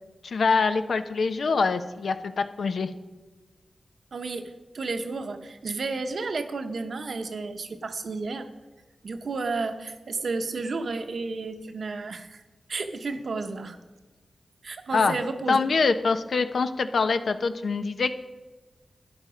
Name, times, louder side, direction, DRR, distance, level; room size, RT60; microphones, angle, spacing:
voice 1, 0.2-2.9 14.9-15.2 15.5-18.3, left 4 dB, 80° left, 9 dB, 0.8 m, -24 dB
voice 2, 4.1-8.5 9.0-12.4 12.7-13.8 14.6-15.6, right 3 dB, 75° right, 7 dB, 1.0 m, -32 dB
12.5 x 10.5 x 5.0 m, 1.2 s
wide cardioid pair, 110°, 0 cm